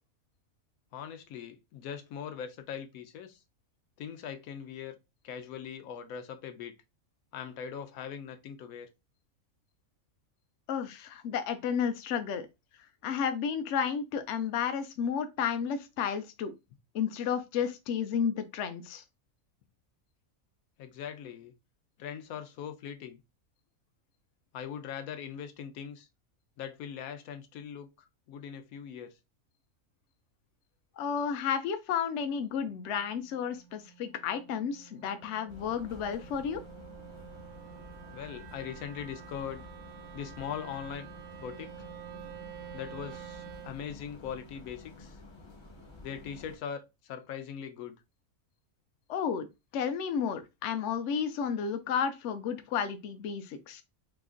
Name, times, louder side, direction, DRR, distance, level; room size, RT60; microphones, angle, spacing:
voice 1, 0.9-3.4 4.0-5.0 5.2-6.7 7.3-8.9 20.8-21.5 22.0-23.2 24.5-26.1 26.6-29.1 38.1-39.7 40.1-41.1 41.4-41.7 42.7-45.2 46.0-48.0, left 8 dB, 90° left, 1.1 m, -41 dB
voice 2, 10.7-12.5 13.0-16.5 16.9-19.0 31.0-36.6 49.1-49.5 49.7-53.8, left 7 dB, 65° left, 0.8 m, -32 dB
Wind instrument woodwind instrument, 32.2-43.8, right 11 dB, 90° right, 1.1 m, -49 dB
sound 1, 35.5-46.6, left 2 dB, 30° left, 0.5 m, -51 dB
3.0 x 2.4 x 3.6 m
omnidirectional pair, 1.5 m